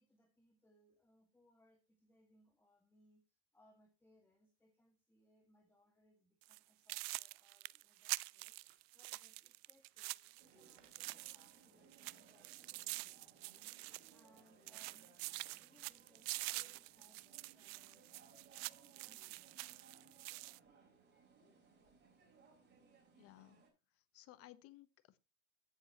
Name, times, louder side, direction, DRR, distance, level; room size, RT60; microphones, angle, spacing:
voice 1, 0.0-15.1 15.5-18.1 18.8-19.6, equal, 5° left, 1.8 m, -72 dB
sound 1, 6.4-6.6 6.9-11.6 11.9-14.4 14.7-20.6, right 22 dB, 55° right, 0.4 m, -46 dB
sound 2, 6.5-6.7 7.0-7.1 7.4-8.9 9.5-9.6 9.8-11.1 11.5-11.6, right 10 dB, 75° right, 2.2 m, -75 dB
sound 3, 10.4-23.7, right 4 dB, 25° right, 4.8 m, -66 dB
voice 2, 23.1-23.7 23.9-25.2, left 15 dB, 35° left, 1.1 m, -60 dB
16.0 x 7.4 x 3.0 m
hypercardioid pair, 120°, 38 cm